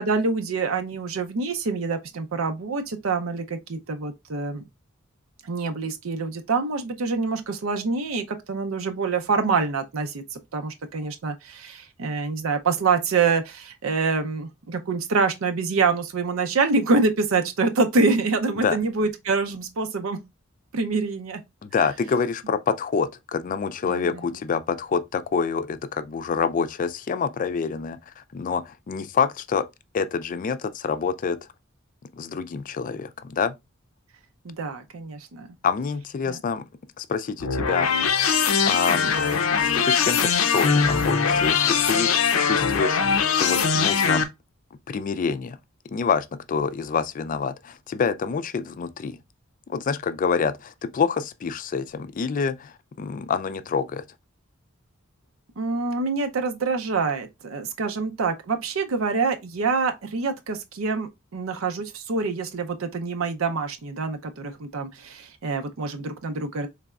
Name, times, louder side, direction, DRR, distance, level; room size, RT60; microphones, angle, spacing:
voice 1, 0.0-4.6 5.4-20.2 20.7-21.4 21.8-21.9 23.8-24.2 34.4-35.5 36.3-36.4 55.6-66.7, right 4 dB, 75° right, 0.5 m, -26 dB
voice 2, 21.6-29.7 29.9-31.4 32.1-33.6 35.6-36.6 37.0-37.9 38.6-39.1 39.5-42.1 42.4-43.0 43.4-44.3 44.9-45.6 45.9-49.2 49.7-54.0, left 5 dB, 40° left, 0.3 m, -27 dB
sound 1, 37.4-44.2, left 6 dB, 90° left, 0.6 m, -21 dB
4.0 x 3.3 x 2.3 m
head